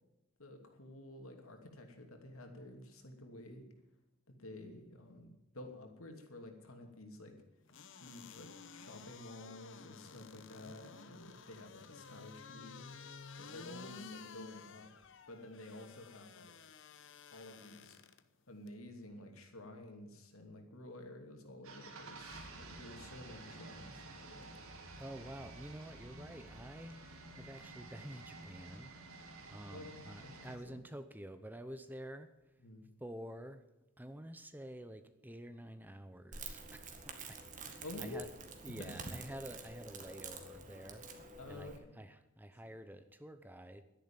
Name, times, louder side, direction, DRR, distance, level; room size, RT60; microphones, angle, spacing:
voice 1, 0.4-3.6 4.3-7.3 8.0-12.9 13.4-16.7 17.3-18.0 18.5-24.5 29.7-30.8 32.6-32.9 37.8-38.2 38.7-38.9 41.4-42.0 42.6-42.7, left 1 dB, 75° left, 4 dB, 2.8 m, -51 dB
sound 1, 7.7-18.2 18.7-18.8, left 5 dB, 60° left, 1.0 m, -53 dB
sound 2, 21.6-30.6, right 2 dB, 75° right, 2.5 m, -51 dB
voice 2, 25.0-32.3 33.0-33.6 34.0-38.3 38.6-43.8, right 1 dB, 10° right, 10 dB, 0.7 m, -49 dB
Crackle, 36.3-41.8, right 4 dB, 35° right, 1.9 m, -48 dB
12.0 x 10.5 x 8.9 m, 0.96 s
head